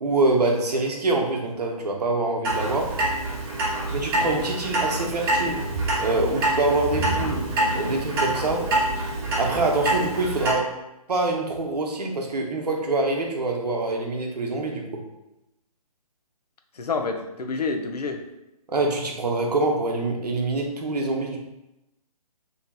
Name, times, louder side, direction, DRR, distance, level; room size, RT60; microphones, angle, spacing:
voice 1, 0.0-2.9 3.9-5.7 6.0-7.5 7.7-8.7 9.4-10.7 11.1-14.9 18.7-21.4, right 2 dB, 85° right, 1 dB, 0.7 m, -25 dB
Clock, 2.4-10.5, right 1 dB, 35° right, 0.9 m, -26 dB
voice 2, 16.7-18.2, left 4 dB, 85° left, 4 dB, 0.5 m, -28 dB
2.8 x 2.7 x 2.2 m, 0.92 s
hypercardioid pair, 145°, 20 cm